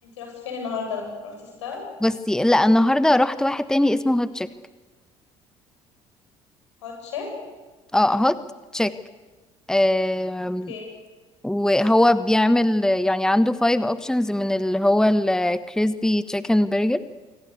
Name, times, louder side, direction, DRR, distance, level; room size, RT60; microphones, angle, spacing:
voice 1, 0.0-1.8 6.8-7.3 10.7-10.9, left 5 dB, 80° left, 2 dB, 7.8 m, -33 dB
voice 2, 2.0-4.5 7.9-8.4 8.7-8.9 9.7-10.7 11.4-17.0, left 1 dB, 5° left, 14 dB, 1.2 m, -20 dB
26.5 x 24.0 x 8.3 m, 1.3 s
figure-of-eight pair, 55°, 15 cm